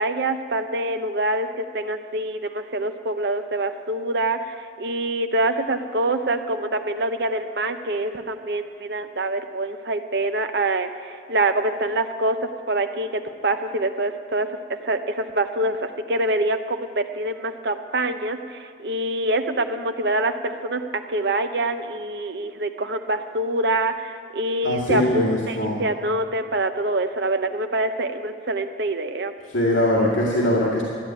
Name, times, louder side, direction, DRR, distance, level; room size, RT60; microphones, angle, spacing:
voice 1, 0.0-12.4 12.7-14.5 14.8-29.3, right 2 dB, 55° right, 7 dB, 0.9 m, -25 dB
voice 2, 24.6-25.8 29.5-30.8, left 1 dB, 85° left, -4 dB, 2.2 m, -21 dB
13.0 x 10.0 x 9.0 m, 2.1 s
head